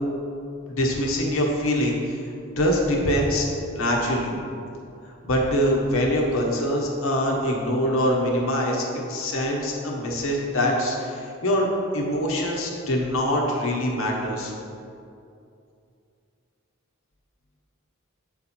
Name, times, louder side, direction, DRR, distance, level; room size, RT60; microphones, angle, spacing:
voice 1, 0.8-2.2 2.6-3.5 3.7-4.3 5.2-8.8 9.1-11.7 11.9-14.5, equal, 70° left, -1 dB, 1.1 m, -24 dB
7.6 x 4.2 x 4.4 m, 2.5 s
head